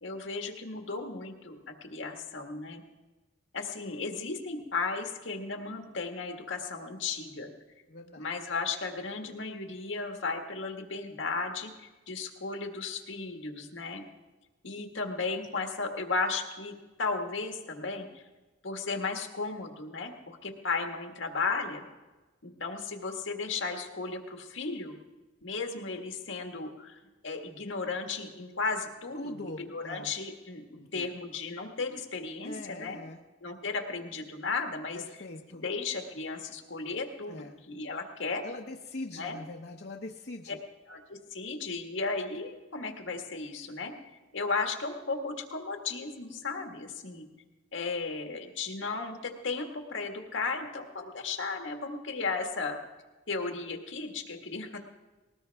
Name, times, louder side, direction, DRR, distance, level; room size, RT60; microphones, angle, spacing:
voice 1, 0.0-2.8 3.5-7.5 8.2-14.0 14.6-18.2 18.6-21.8 22.4-24.9 25.4-33.0 33.4-35.0 35.5-38.4 39.2-39.4 40.9-43.9 44.3-47.2 47.7-52.8 53.3-54.8, left 4 dB, 80° left, 3 dB, 1.8 m, -35 dB
voice 2, 7.9-8.3 29.1-30.1 30.8-31.1 32.4-33.2 34.9-35.6 37.3-37.6 38.4-40.6, left 2 dB, 55° left, 1 dB, 0.9 m, -42 dB
20.0 x 19.0 x 3.5 m, 1.2 s
head